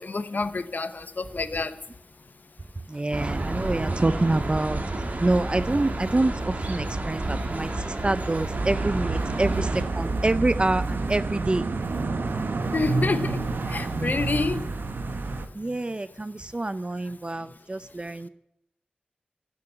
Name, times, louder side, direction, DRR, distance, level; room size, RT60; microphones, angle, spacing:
voice 1, 0.0-1.8 12.7-14.6, left 3 dB, 60° left, 0.9 m, -28 dB
voice 2, 2.9-11.7 15.5-18.3, right 2 dB, 30° right, 0.5 m, -26 dB
sound 1, 3.1-9.8, right 2 dB, 50° right, 2.2 m, -31 dB
sound 2, 8.5-15.5, right 3 dB, 90° right, 1.1 m, -28 dB
11.5 x 7.7 x 10.0 m
wide cardioid pair, 85°, 3 cm